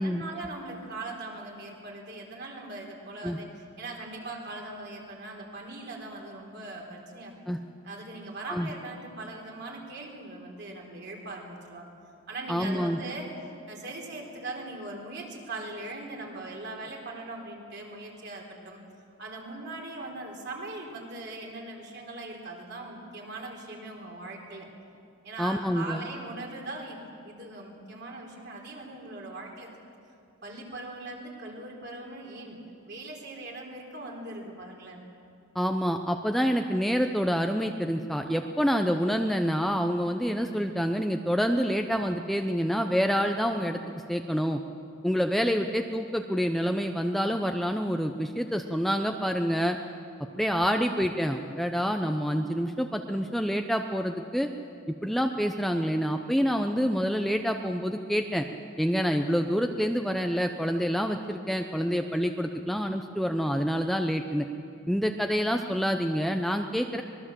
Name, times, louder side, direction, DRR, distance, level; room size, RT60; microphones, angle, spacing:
voice 1, 0.0-7.4 7.8-11.9 12.3-13.3 13.7-18.8 19.2-24.7 25.2-29.7 30.4-32.6 32.9-35.0, right 2 dB, 50° right, 0 dB, 4.1 m, -40 dB
voice 2, 12.5-13.0 25.4-26.0 35.5-43.8 44.1-44.6 45.0-49.8 50.4-54.5 55.0-58.5 58.8-64.5 64.9-67.0, equal, ahead, 4 dB, 0.7 m, -27 dB
25.0 x 21.0 x 7.5 m, 2.5 s
head